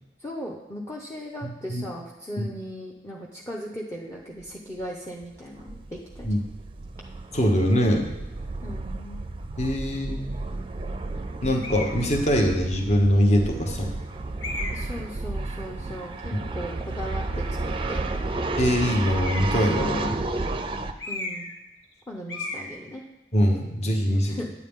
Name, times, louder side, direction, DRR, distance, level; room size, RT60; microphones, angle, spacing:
voice 1, 0.2-6.3 8.6-9.2 14.7-18.3 21.1-21.5 22.1-23.0 24.2-24.5, equal, 15° left, -2 dB, 0.8 m, -38 dB
voice 2, 1.4-1.8 2.4-2.5 6.2-6.4 7.3-8.0 9.6-10.3 11.4-14.0 16.3-16.4 18.6-20.2 23.3-24.4, equal, 40° left, 3 dB, 1.1 m, -23 dB
sound 1, 4.4-4.5 4.8-4.9 5.2-20.9, right 2 dB, 30° right, 0.5 m, -32 dB
sound 2, 11.6-12.0 12.8-12.9 14.4-14.9 19.1-19.7 21.0-21.6 21.8-22.0 22.3-22.7, left 2 dB, 90° left, 1.6 m, -34 dB
9.6 x 8.4 x 3.7 m, 0.95 s
head